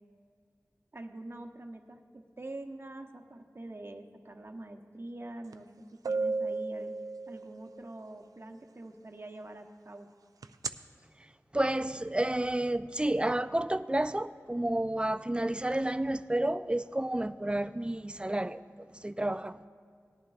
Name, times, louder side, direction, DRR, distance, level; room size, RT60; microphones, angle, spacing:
voice 1, 0.9-7.0 7.3-10.1, right 2 dB, 45° right, 0.9 m, -45 dB
sound 1, 5.5-5.6 6.0-7.8 10.4-10.7, right 3 dB, 90° right, 0.4 m, -33 dB
voice 2, 11.5-18.6 19.0-19.6, right 1 dB, 15° right, 0.4 m, -30 dB
18.0 x 11.0 x 2.4 m
wide cardioid pair, 60°, 6 cm